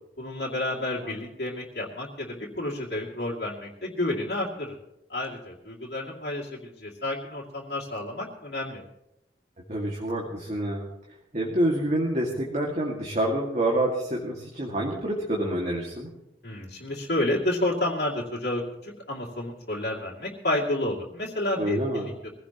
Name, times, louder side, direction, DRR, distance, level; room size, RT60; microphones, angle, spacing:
voice 1, 0.2-4.8 5.1-8.8 16.4-22.1, left 1 dB, 65° left, -5 dB, 2.6 m, -30 dB
voice 2, 9.7-10.9 11.3-16.1 21.6-22.1, right 1 dB, 40° right, -2 dB, 2.2 m, -27 dB
22.0 x 16.5 x 3.0 m, 0.87 s
head